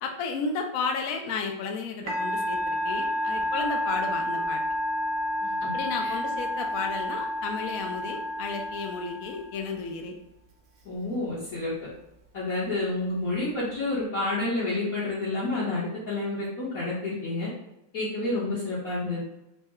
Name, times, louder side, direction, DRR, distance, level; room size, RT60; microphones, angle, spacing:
voice 1, 0.0-4.6 5.6-10.2, left 4 dB, 80° left, 3 dB, 0.7 m, -33 dB
Musical instrument, 2.1-9.7, left 1 dB, 75° right, 1.4 m, -30 dB
voice 2, 10.8-11.7 12.3-17.5 17.9-19.2, left 2 dB, 55° left, -9 dB, 1.3 m, -29 dB
4.0 x 2.1 x 3.5 m, 0.85 s
omnidirectional pair, 2.1 m